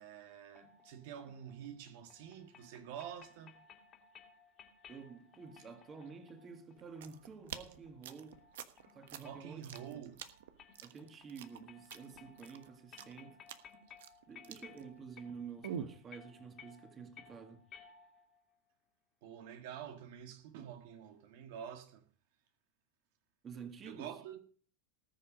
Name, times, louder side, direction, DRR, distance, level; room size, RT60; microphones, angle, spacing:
voice 1, 0.0-3.6 9.2-10.3 19.2-22.1 23.8-24.4, right 9 dB, 65° right, 1.6 m, -48 dB
sound 1, 0.6-18.4, left 6 dB, 30° left, 2.4 m, -60 dB
voice 2, 4.9-8.4 8.9-9.6 9.9-10.1 10.8-13.4 14.3-17.6 23.4-24.1, right 6 dB, 25° right, 2.1 m, -50 dB
sound 2, 6.8-15.3 15.6-16.0, right 8 dB, 85° right, 1.2 m, -47 dB
19.0 x 7.2 x 5.1 m
supercardioid pair, 145°, 0 cm